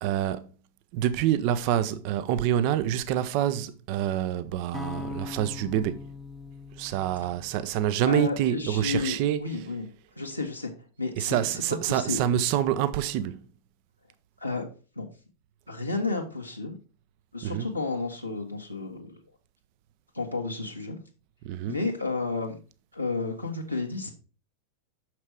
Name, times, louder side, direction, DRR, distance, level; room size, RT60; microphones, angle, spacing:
voice 1, 0.0-0.5 0.9-6.1 6.8-9.4 11.2-13.4 17.4-17.7 21.4-21.8, right 11 dB, 45° right, 0.6 m, -27 dB
sound 1, 4.7-8.9, left 5 dB, 10° left, 0.7 m, -42 dB
voice 2, 8.0-9.9 10.1-10.7 11.0-12.2 14.4-14.7 14.9-15.1 15.7-16.7 17.3-19.2 20.1-21.0 21.6-22.5 22.9-24.1, left 3 dB, 90° left, 1.5 m, -32 dB
6.4 x 5.9 x 4.7 m
figure-of-eight pair, 90°, 0 cm